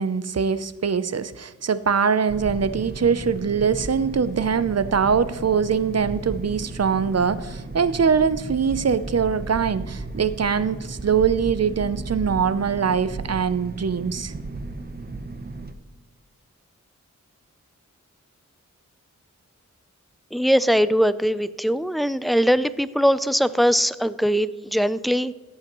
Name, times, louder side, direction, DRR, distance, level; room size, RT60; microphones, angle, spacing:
voice 1, 0.0-14.3, right 6 dB, 55° right, 15 dB, 0.6 m, -23 dB
sound 1, 2.3-15.7, right 3 dB, 30° right, 1.0 m, -35 dB
voice 2, 20.3-25.3, equal, ahead, 15 dB, 0.4 m, -21 dB
15.5 x 8.4 x 3.0 m, 1.3 s
wide cardioid pair, 50°, 31 cm